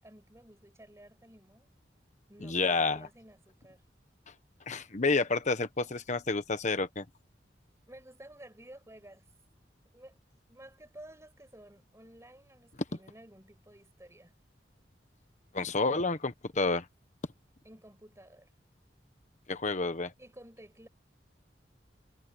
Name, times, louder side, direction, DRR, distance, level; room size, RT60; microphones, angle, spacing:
voice 1, 0.0-1.7 2.3-3.8 7.9-9.3 9.9-10.2 10.5-14.4 17.6-18.5 20.2-20.9, right 1 dB, 15° right, 6.9 m, -53 dB
voice 2, 2.4-3.1 4.7-7.0 15.5-16.9 19.5-20.1, left 3 dB, 40° left, 1.1 m, -29 dB
head